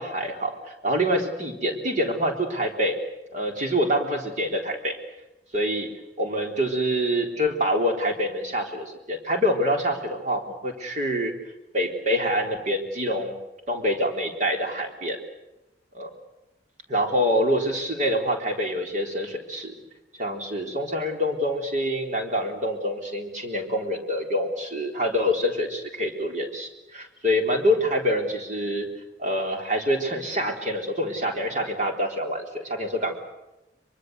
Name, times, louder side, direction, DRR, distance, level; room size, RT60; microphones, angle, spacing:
voice 1, 0.0-3.0 3.3-5.0 5.5-5.9 6.2-11.3 11.7-13.3 13.7-15.2 15.9-16.1 16.9-19.7 20.2-28.9 29.2-33.2, equal, 40° right, 3 dB, 3.8 m, -26 dB
24.0 x 24.0 x 8.1 m, 0.97 s
head